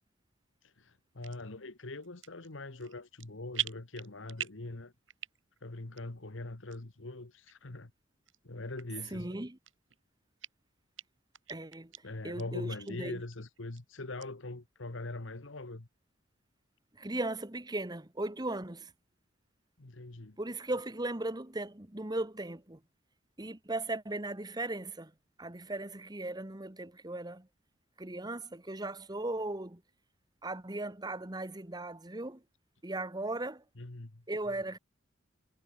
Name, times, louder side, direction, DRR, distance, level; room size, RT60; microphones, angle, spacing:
voice 1, 0.6-4.9 5.6-7.9 8.4-9.4 12.0-15.9 19.8-20.4 33.8-34.2, left 2 dB, 80° left, 1.5 m, -42 dB
sound 1, 1.2-1.4 2.0-2.5 2.8-3.3 3.5-4.7 5.1-5.6 6.0-6.1 6.7-6.8 7.5-7.6 8.3-8.4 8.8-8.9 9.3-10.0 10.4-10.5 11.0-11.1 11.3-12.0 12.4-12.5 12.8-12.9 13.3-13.8 14.2-14.3, right 12 dB, 80° right, 4.4 m, -40 dB
voice 2, 9.1-9.6 11.5-11.9 12.2-13.2 16.9-18.9 20.4-22.8 23.4-25.1 25.4-27.5 28.0-29.8 30.4-32.4 32.8-33.6 34.3-34.8, right 2 dB, 20° right, 1.4 m, -37 dB
head